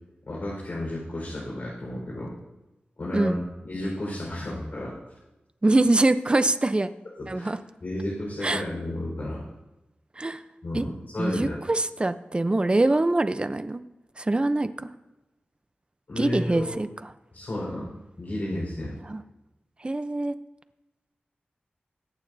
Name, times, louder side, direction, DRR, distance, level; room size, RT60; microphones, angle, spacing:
voice 1, 0.3-2.3 3.0-4.9 7.2-7.5 7.8-9.4 10.6-11.6 16.1-16.6 17.3-17.9 18.2-19.0, left 1 dB, 60° left, -6 dB, 4.7 m, -32 dB
voice 2, 5.6-6.9 7.3-7.6 8.4-8.6 10.2-10.4 10.7-10.9 11.2-13.8 14.2-14.9 16.2-16.9 19.0-19.2 19.8-20.3, right 2 dB, 30° right, 11 dB, 0.6 m, -24 dB
22.0 x 8.8 x 2.7 m, 1.0 s
wide cardioid pair, 75°, 4 cm